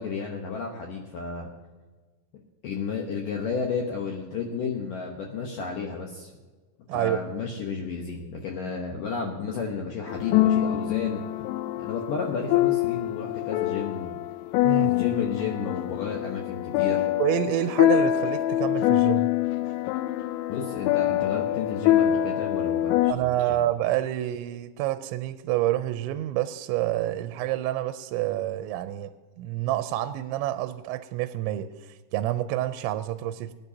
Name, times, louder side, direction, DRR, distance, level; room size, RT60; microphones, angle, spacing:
voice 1, 0.0-1.5 2.6-6.3 6.9-11.2 11.8-14.2 14.8-17.0 20.5-23.7, left 5 dB, 70° left, 0 dB, 2.1 m, -32 dB
voice 2, 6.9-7.2 14.6-14.9 17.2-19.3 23.1-29.1 29.4-33.5, right 14 dB, 85° right, 10 dB, 2.8 m, -28 dB
sound 1, 10.1-23.1, left 13 dB, 90° left, 3.0 m, -25 dB
24.5 x 10.5 x 2.8 m, 1.3 s
omnidirectional pair, 5.3 m